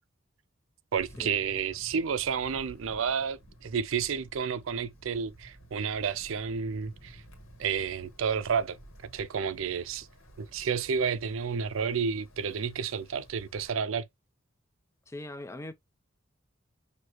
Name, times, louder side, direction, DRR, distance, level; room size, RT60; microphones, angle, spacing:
voice 1, 0.9-7.2 7.6-8.8 9.1-10.1 10.4-14.0, right 6 dB, 75° right, 0.4 m, -31 dB
Wind, 1.0-13.7, right 1 dB, 85° left, 1.5 m, -53 dB
voice 2, 15.1-15.7, left 1 dB, 15° left, 0.3 m, -40 dB
6.2 x 2.7 x 2.9 m
head